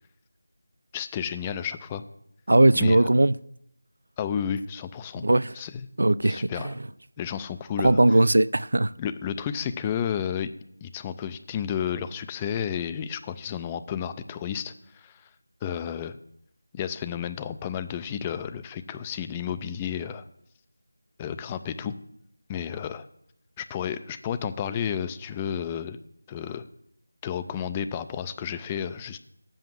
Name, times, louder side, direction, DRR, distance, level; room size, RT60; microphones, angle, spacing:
voice 1, 0.9-2.0 2.8-3.0 4.2-5.3 5.6-5.9 6.2-6.8 7.2-8.0 9.0-10.5 10.8-15.3 15.6-16.2 16.7-20.3 21.2-21.9 22.5-23.1 23.6-26.0 26.3-26.6 27.2-29.2, left 8 dB, 15° left, 0.4 m, -32 dB
voice 2, 2.5-3.3 5.2-5.5 6.0-6.7 7.8-8.9, right 2 dB, 70° right, 0.4 m, -19 dB
7.7 x 6.9 x 7.5 m
figure-of-eight pair, 170°, 0 cm